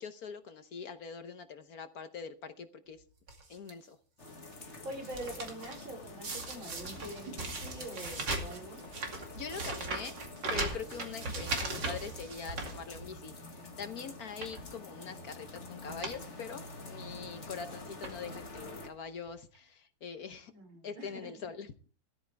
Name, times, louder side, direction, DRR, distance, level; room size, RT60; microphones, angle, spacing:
voice 1, 0.0-3.0 3.5-4.0 9.3-10.1 10.5-20.5 20.8-21.7, left 6 dB, 55° left, 10 dB, 1.4 m, -43 dB
sound 1, 3.3-3.7 4.3-4.6 4.9-5.9 6.2-13.3 13.7-13.8 14.3-14.6 15.5-15.6 15.8-16.2 16.5-16.6 17.5-17.7 18.0-18.5 19.3-19.4 19.5-19.6, right 3 dB, 65° right, 3.2 m, -38 dB
sound 2, 4.2-18.9, left 2 dB, 40° left, 2.2 m, -48 dB
voice 2, 4.6-8.8 20.5-21.3, right 1 dB, 85° right, 1 dB, 6.1 m, -45 dB
17.0 x 13.5 x 3.4 m, 0.37 s
omnidirectional pair, 2.1 m